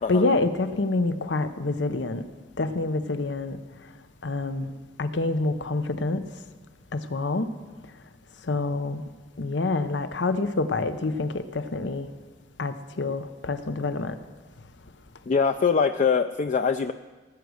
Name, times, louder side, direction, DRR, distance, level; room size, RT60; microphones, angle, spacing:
voice 1, 0.0-2.2 2.6-3.6 4.2-4.7 5.0-6.2 6.9-7.5 8.5-9.0 9.4-12.1 12.6-14.2, left 2 dB, 85° left, 11 dB, 0.8 m, -27 dB
voice 2, 15.3-16.9, left 5 dB, 45° left, 8 dB, 0.4 m, -23 dB
18.0 x 8.2 x 6.3 m, 1.4 s
head